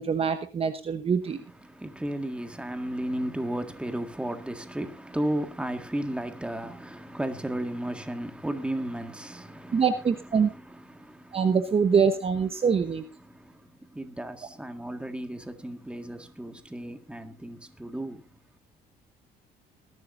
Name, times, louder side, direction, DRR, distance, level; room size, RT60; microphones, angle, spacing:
voice 1, 0.0-1.4 9.7-10.5 11.3-13.0, right 6 dB, 35° right, 1.0 m, -24 dB
voice 2, 1.3-11.6 13.2-18.2, right 1 dB, 5° right, 1.9 m, -34 dB
20.5 x 12.0 x 2.7 m
cardioid pair, 110°, 17 cm